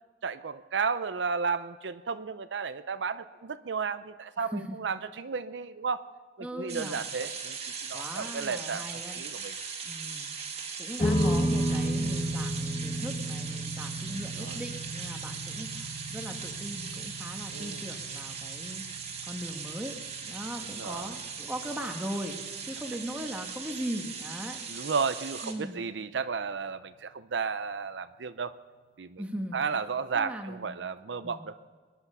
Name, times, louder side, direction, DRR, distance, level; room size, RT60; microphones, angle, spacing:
voice 1, 0.2-6.1 6.4-9.6 14.4-14.6 17.5-17.8 20.8-21.2 24.7-28.5 29.0-29.2 29.5-31.6, right 5 dB, 90° right, 12 dB, 0.6 m, -33 dB
voice 2, 4.4-4.8 6.4-7.1 7.9-9.2 9.8-10.3 10.8-18.8 19.2-20.0 20.2-22.4 22.6-24.6 25.4-25.8 29.2-29.6 30.1-30.7 31.2-31.4, equal, 10° right, 3 dB, 1.4 m, -39 dB
sound 1, 6.7-25.5, right 6 dB, 35° right, 2.1 m, -39 dB
sound 2, 11.0-23.5, equal, 35° left, 1.3 m, -34 dB
23.0 x 10.5 x 5.6 m, 1.5 s
head